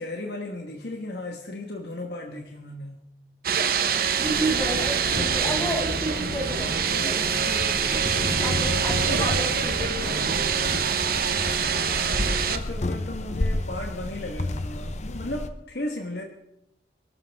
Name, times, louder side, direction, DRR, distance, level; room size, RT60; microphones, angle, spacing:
voice 1, 0.0-3.0 11.7-16.2, left 1 dB, 60° left, 2 dB, 1.4 m, -35 dB
philadelphia cvsbroadst outside, 3.4-12.6, right 7 dB, 55° right, 1.0 m, -25 dB
voice 2, 3.9-10.6, right 1 dB, 20° left, -3 dB, 5.9 m, -32 dB
sound 1, 4.2-15.5, left 2 dB, 40° left, 0.8 m, -32 dB
23.0 x 13.5 x 3.6 m, 0.82 s
head